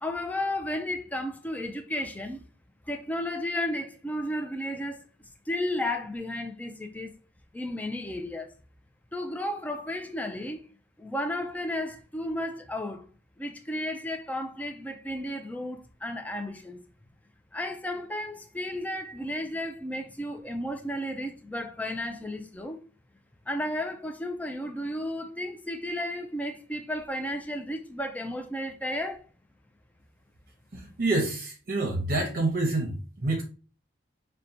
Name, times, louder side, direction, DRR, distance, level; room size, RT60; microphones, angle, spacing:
voice 1, 0.0-2.4 2.9-5.0 5.5-7.2 7.5-8.5 9.1-10.7 11.0-13.0 13.4-16.8 17.5-22.8 23.5-29.3, left 1 dB, 10° left, 0.3 m, -33 dB
voice 2, 30.7-33.4, right 2 dB, 50° right, 0.7 m, -27 dB
5.6 x 2.2 x 2.6 m
head